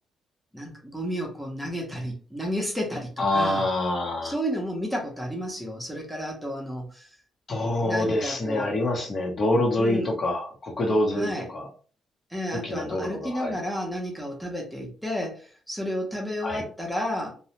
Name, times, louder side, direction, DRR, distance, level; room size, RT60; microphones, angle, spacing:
voice 1, 0.5-3.7 4.2-7.1 7.8-8.7 9.8-10.1 11.1-11.5 12.3-17.4, equal, 5° right, 0 dB, 0.8 m, -32 dB
voice 2, 3.2-4.3 7.5-11.6 12.5-13.5 16.4-16.6, left 1 dB, 40° left, 1 dB, 0.8 m, -26 dB
2.3 x 2.1 x 2.9 m, 0.39 s
cardioid pair, 90°, 0 cm